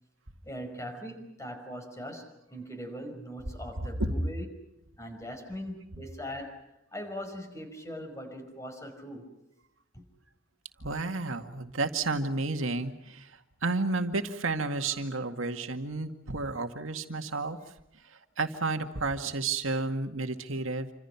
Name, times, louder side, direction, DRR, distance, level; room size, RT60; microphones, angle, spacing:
voice 1, 0.4-4.5 5.0-6.6 6.9-9.3 9.9-10.0, equal, 15° left, 6 dB, 5.3 m, -40 dB
voice 2, 3.8-4.1 10.8-13.3 13.6-17.6 18.4-20.9, right 3 dB, 85° right, 6 dB, 2.1 m, -31 dB
28.0 x 26.5 x 5.9 m, 0.87 s
head